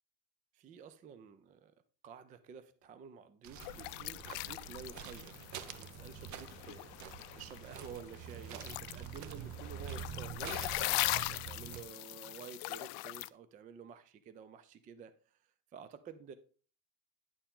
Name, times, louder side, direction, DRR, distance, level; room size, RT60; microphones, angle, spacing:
voice 1, 0.5-1.7 2.0-15.1 15.4-16.3, right 7 dB, 20° right, 0.3 m, -51 dB
sound 1, 2.8-2.9 3.6-6.8 7.4-7.9 8.3-11.3, right 2 dB, 65° right, 2.3 m, -69 dB
sound 2, 3.4-11.8, right 8 dB, 45° right, 0.8 m, -46 dB
sound 3, 3.6-13.3, left 21 dB, 85° left, 0.5 m, -40 dB
9.9 x 6.9 x 3.7 m
cardioid pair, 165°, 41 cm